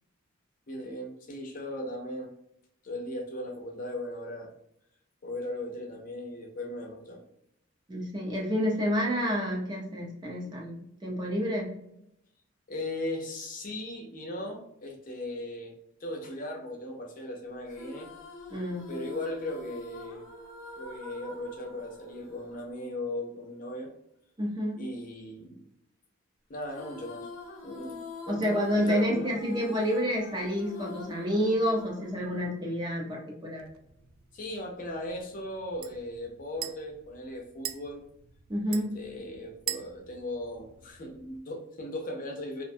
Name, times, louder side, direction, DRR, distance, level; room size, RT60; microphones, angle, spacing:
voice 1, 0.7-2.3 2.8-4.5 5.2-7.2 12.7-15.7 16.0-18.1 18.9-20.2 20.8-23.9 24.7-25.7 26.5-27.3 27.6-29.3 34.3-38.0 38.7-42.6, left 1 dB, 40° left, 1 dB, 0.5 m, -37 dB
voice 2, 7.9-11.7 18.5-18.9 24.4-24.8 28.3-33.7 38.5-38.9, equal, 20° right, -2 dB, 0.5 m, -29 dB
sound 1, 17.7-23.2 26.7-33.1, left 3 dB, 90° left, 0.6 m, -45 dB
sound 2, 33.6-41.4, right 10 dB, 75° right, 0.3 m, -44 dB
2.5 x 2.1 x 2.6 m, 0.77 s
head